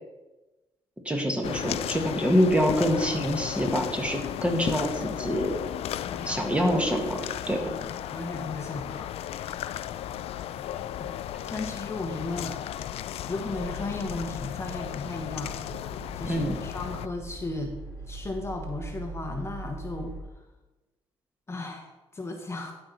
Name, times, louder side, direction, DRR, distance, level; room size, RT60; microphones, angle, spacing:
voice 1, 1.0-5.5 6.2-7.6 16.3-16.6, equal, 10° right, 2 dB, 1.7 m, -26 dB
sound 1, 1.4-17.1, left 11 dB, 80° left, 0.4 m, -35 dB
voice 2, 6.1-6.5 7.6-9.1 11.0-11.1 11.4-12.6 13.3-15.6 16.2-17.8 18.1-20.1 21.5-22.7, left 2 dB, 25° left, 3 dB, 1.1 m, -35 dB
sound 2, 13.6-20.2, right 2 dB, 45° right, 3.3 m, -41 dB
12.0 x 4.6 x 5.4 m, 1.1 s
cardioid pair, 100°, 10 cm